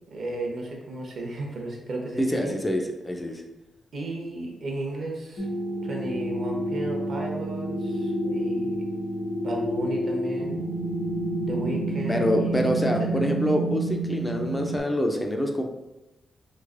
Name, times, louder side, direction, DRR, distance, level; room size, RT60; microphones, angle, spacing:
voice 1, 0.1-2.6 3.9-5.5 5.8-8.8 9.4-10.6 11.4-13.2, right 2 dB, 55° right, 0 dB, 0.7 m, -34 dB
voice 2, 2.3-3.4 12.1-15.6, equal, 10° left, 2 dB, 0.4 m, -26 dB
sound 1, 5.4-14.8, right 1 dB, 55° left, 0.8 m, -29 dB
3.2 x 3.1 x 2.5 m, 0.96 s
wide cardioid pair, 130°, 0 cm